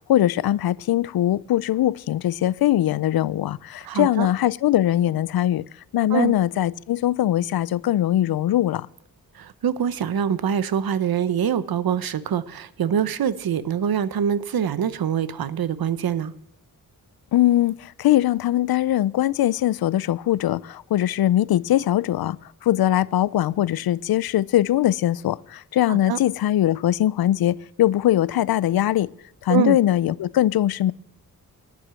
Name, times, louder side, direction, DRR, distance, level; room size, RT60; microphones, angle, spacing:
voice 1, 0.0-5.6 5.9-8.9 17.3-29.1 29.4-30.9, left 13 dB, 90° left, 0.5 m, -21 dB
voice 2, 3.8-4.3 6.1-6.3 9.3-16.3 25.9-26.2 29.5-29.8, right 8 dB, 85° right, 0.9 m, -24 dB
11.5 x 9.7 x 7.6 m
wide cardioid pair, 145°, 35 cm